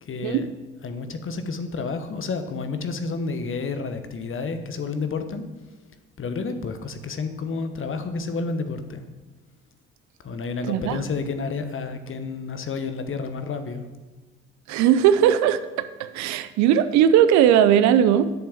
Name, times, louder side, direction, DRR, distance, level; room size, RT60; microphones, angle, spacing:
voice 1, 0.0-0.5 0.8-5.8 6.2-9.0 10.2-13.9, left 4 dB, 40° left, 9 dB, 1.3 m, -30 dB
voice 2, 10.7-11.0 14.7-18.3, right 10 dB, 65° right, 13 dB, 0.7 m, -18 dB
8.5 x 6.9 x 7.5 m, 1.2 s
hypercardioid pair, 50°, 30 cm